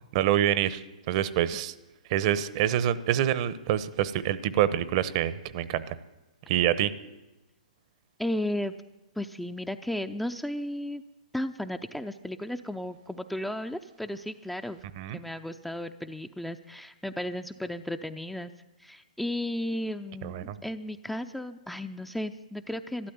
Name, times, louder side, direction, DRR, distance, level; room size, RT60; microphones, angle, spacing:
voice 1, 0.1-0.8 1.1-1.7 2.1-6.0 6.5-6.9 15.0-15.2 20.2-20.6, right 11 dB, 45° right, 15 dB, 1.0 m, -26 dB
voice 2, 8.2-8.7 9.2-11.0 11.3-14.8 15.1-18.5 18.8-23.1, left 1 dB, ahead, 8 dB, 0.6 m, -34 dB
13.0 x 12.0 x 9.3 m, 1.0 s
hypercardioid pair, 125°, 4 cm